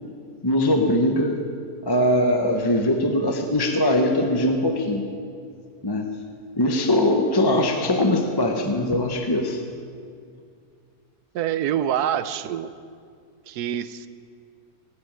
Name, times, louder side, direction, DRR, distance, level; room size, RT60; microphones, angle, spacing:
voice 1, 0.4-1.4 1.8-5.0 5.8-6.1 6.6-9.6, left 1 dB, 20° left, 3 dB, 0.8 m, -21 dB
voice 2, 11.3-12.8 13.5-14.1, right 10 dB, 90° right, 14 dB, 1.2 m, -26 dB
19.5 x 7.8 x 8.9 m, 2.3 s
omnidirectional pair, 1.6 m